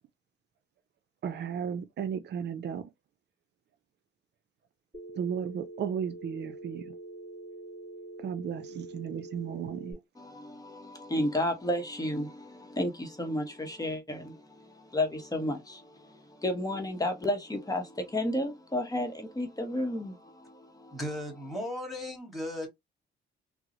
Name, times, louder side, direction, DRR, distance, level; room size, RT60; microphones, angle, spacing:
voice 1, 1.2-2.9 5.1-7.0 8.2-10.0, right 7 dB, 60° right, 0.5 m, -35 dB
Telephone, 4.9-9.9, right 2 dB, 25° right, 2.3 m, -45 dB
voice 2, 10.2-21.0, left 1 dB, 20° left, 0.9 m, -32 dB
voice 3, 20.9-22.7, left 1 dB, ahead, 1.9 m, -36 dB
3.7 x 2.0 x 2.9 m
cardioid pair, 90°, 20 cm